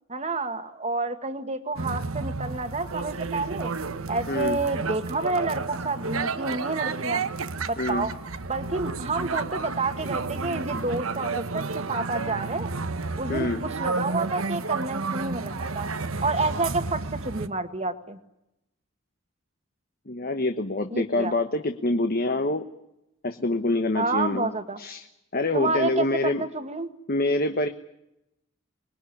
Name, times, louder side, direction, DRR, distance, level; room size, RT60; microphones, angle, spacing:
voice 1, 0.0-7.2 7.7-8.2 8.5-12.7 13.2-18.2 20.9-21.3 23.9-24.8 25.5-26.9, right 3 dB, 30° right, 8 dB, 1.8 m, -29 dB
sound 1, 1.8-17.5, right 4 dB, 85° right, 1.2 m, -31 dB
voice 2, 4.3-4.6 7.8-8.1 13.3-13.6 20.1-22.6 23.2-24.5 24.8-25.0 25.3-26.4 27.1-27.7, left 2 dB, 45° left, 7 dB, 1.2 m, -26 dB
26.0 x 21.0 x 9.9 m, 0.88 s
head